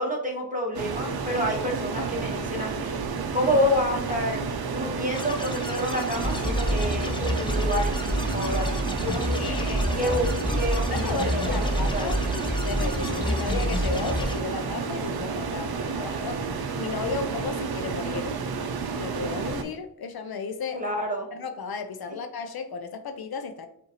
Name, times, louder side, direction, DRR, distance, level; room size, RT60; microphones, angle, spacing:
voice 1, 0.0-3.0 3.3-4.4 4.7-8.7 9.0-9.6 9.9-10.2 10.5-12.1 20.7-21.3, equal, 20° right, 1.2 m, -28 dB
sound 1, 0.7-19.6, right 5 dB, 65° right, 0.6 m, -31 dB
sound 2, 5.1-14.4, left 2 dB, 15° left, 0.4 m, -37 dB
sound 3, 6.1-14.2, equal, 5° right, 1.3 m, -28 dB
voice 2, 9.4-10.2 10.9-12.2 12.6-18.4 18.9-20.8 21.3-23.7, left 5 dB, 65° left, 0.5 m, -34 dB
5.4 x 2.6 x 3.0 m
wide cardioid pair, 130°, 40 cm